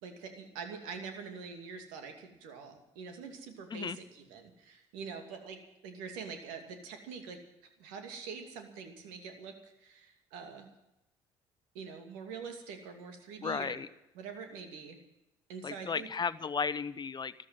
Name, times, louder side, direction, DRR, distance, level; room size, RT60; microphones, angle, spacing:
voice 1, 0.0-7.4 7.8-10.7 11.7-13.8 14.1-15.0 15.5-16.1, right 5 dB, 75° right, 5 dB, 2.6 m, -45 dB
voice 2, 13.4-13.9 15.6-17.3, left 5 dB, 35° left, 15 dB, 0.9 m, -34 dB
14.0 x 12.5 x 7.4 m, 0.91 s
hypercardioid pair, 55°, 13 cm